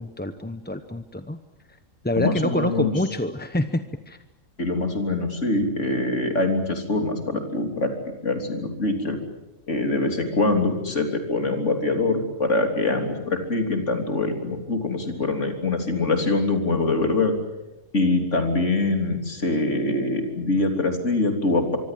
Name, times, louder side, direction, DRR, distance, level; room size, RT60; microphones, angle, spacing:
voice 1, 0.0-1.4 2.0-4.2, left 1 dB, 10° left, 9 dB, 0.7 m, -27 dB
voice 2, 2.2-2.9 4.6-7.9 8.2-9.2 9.7-17.4 17.9-21.8, left 2 dB, 65° left, 5 dB, 3.7 m, -24 dB
25.0 x 24.0 x 7.6 m, 0.98 s
omnidirectional pair, 1.4 m